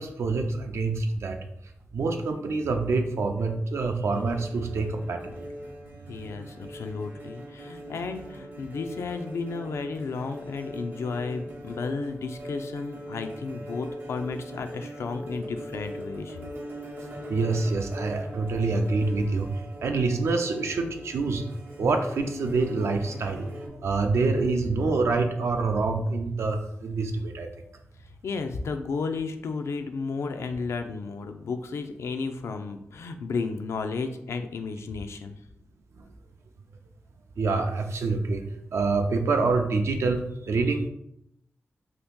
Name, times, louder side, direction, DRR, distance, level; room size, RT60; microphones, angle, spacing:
voice 1, 0.0-1.4 1.9-5.5 17.3-19.5 19.8-21.4 21.8-23.5 23.7-27.5 37.4-38.4 38.7-40.9, right 3 dB, 80° right, 5 dB, 0.4 m, -26 dB
sound 1, 4.1-23.7, equal, 55° right, 0.7 m, -41 dB
voice 2, 6.1-16.4 28.2-35.4, left 4 dB, 80° left, 7 dB, 0.4 m, -33 dB
Piano, 21.8-29.3, left 3 dB, ahead, 0.4 m, -46 dB
2.8 x 2.5 x 3.6 m, 0.79 s
cardioid pair, 70°, 5 cm